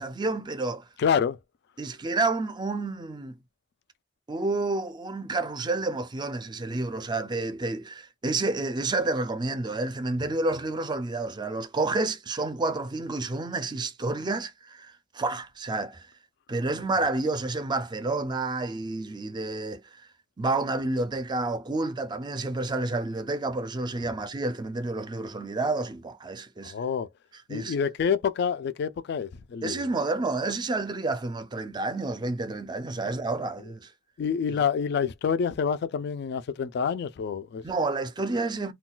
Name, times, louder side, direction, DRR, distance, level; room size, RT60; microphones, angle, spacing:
voice 1, 0.0-0.8 1.8-3.4 4.3-16.1 16.5-20.0 20.4-26.7 27.5-27.7 29.6-33.9 37.6-38.7, right 2 dB, 25° right, 0.4 m, -29 dB
voice 2, 1.0-1.4 26.6-27.1 27.5-29.8 34.2-37.6, left 6 dB, 60° left, 0.3 m, -27 dB
2.3 x 2.2 x 3.7 m
head